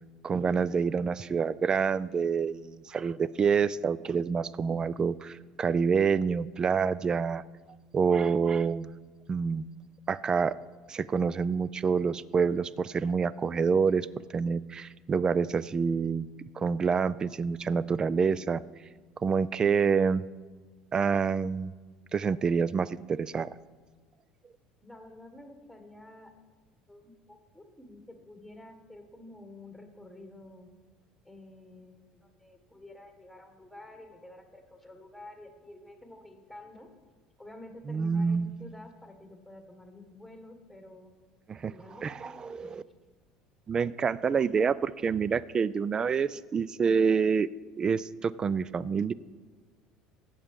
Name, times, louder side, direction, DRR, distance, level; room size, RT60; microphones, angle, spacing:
voice 1, 0.2-7.4 7.9-9.0 9.3-9.6 10.1-10.5 10.9-14.1 14.3-16.3 16.6-18.6 19.2-20.2 20.9-21.7 22.1-23.5 37.9-38.5 41.5-41.7 42.0-42.8 43.7-47.5 47.8-49.1, right 6 dB, 30° right, 20 dB, 0.3 m, -27 dB
voice 2, 24.8-26.3 26.9-30.7 31.3-36.9 37.4-41.1 41.7-42.8, left 1 dB, ahead, 4 dB, 1.8 m, -50 dB
17.0 x 6.9 x 3.7 m, 1.4 s
hypercardioid pair, 70°, 3 cm